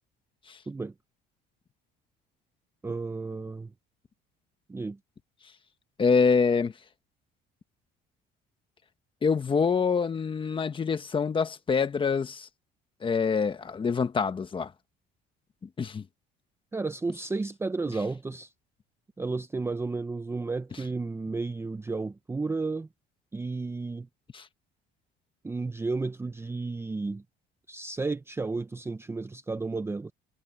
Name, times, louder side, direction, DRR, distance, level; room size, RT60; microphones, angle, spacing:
voice 1, 2.8-3.7 4.7-5.0 16.7-18.5 19.2-22.9 23.3-24.1 25.4-27.2 27.7-30.1, right 3 dB, 10° right, 0.7 m, -32 dB
voice 2, 6.0-6.7 9.2-12.5 13.0-14.7 15.8-16.0 24.3-24.4, left 5 dB, 25° left, 1.4 m, -25 dB
cardioid pair, 130°, 20 cm